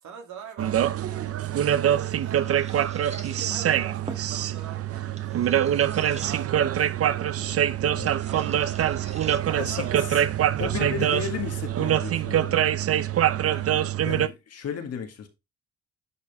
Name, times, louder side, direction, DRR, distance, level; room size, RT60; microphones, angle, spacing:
voice 1, 0.0-3.0 3.5-6.5 6.9-7.6 8.2-8.7 9.4-10.2 10.6-11.2 13.4-13.8, right 7 dB, 70° right, 2.6 m, -45 dB
sound 1, 0.6-14.3, right 10 dB, 50° right, 0.6 m, -24 dB
sound 2, 1.2-12.2, right 3 dB, 20° right, 1.7 m, -48 dB
voice 2, 9.6-10.2 10.6-12.6 14.0-15.3, left 7 dB, 55° left, 2.0 m, -34 dB
10.5 x 4.9 x 3.5 m
cardioid pair, 90°, 30 cm